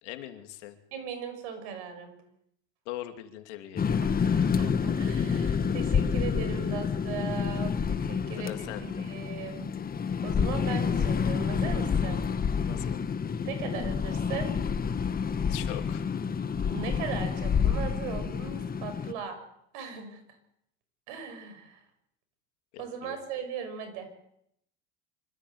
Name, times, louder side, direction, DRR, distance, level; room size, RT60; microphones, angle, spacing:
voice 1, 0.0-0.8 2.9-4.0 8.4-9.1 12.1-12.3 12.7-13.0 15.5-16.0 22.7-23.2, left 14 dB, 80° left, 6 dB, 2.7 m, -41 dB
voice 2, 0.9-2.2 3.9-4.1 4.3-8.5 8.8-9.7 10.2-12.2 13.4-14.5 16.7-19.4 19.7-20.2 21.1-21.8 22.8-24.1, right 6 dB, 80° right, 8 dB, 6.0 m, -38 dB
sound 1, 3.8-19.1, left 6 dB, 25° left, 1.5 m, -28 dB
25.0 x 14.0 x 8.1 m, 0.74 s
supercardioid pair, 100°, 34 cm